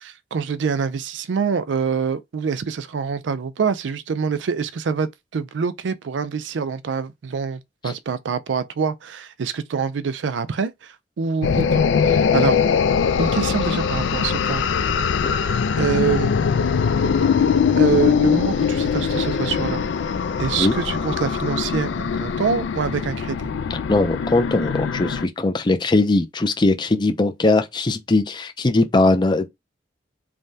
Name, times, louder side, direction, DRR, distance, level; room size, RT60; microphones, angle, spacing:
voice 1, 0.0-12.6 13.2-14.6 15.8-16.3 17.8-19.8 20.4-23.5, right 6 dB, 90° right, 0.4 m, -25 dB
sound 1, 11.4-25.2, left 6 dB, 90° left, 0.3 m, -21 dB
voice 2, 23.7-29.5, left 2 dB, 25° left, 0.4 m, -20 dB
3.3 x 2.2 x 2.7 m
head